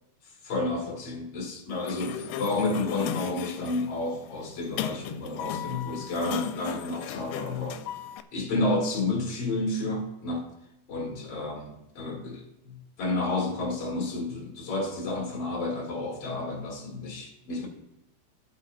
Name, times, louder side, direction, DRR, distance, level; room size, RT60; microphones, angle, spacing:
voice 1, 0.4-7.8 8.3-10.5 10.9-17.7, left 2 dB, 45° left, 2.5 m, -31 dB
Sliding door, 1.7-8.2, left 10 dB, 85° left, 2.5 m, -37 dB
17.5 x 8.3 x 2.7 m
omnidirectional pair, 4.3 m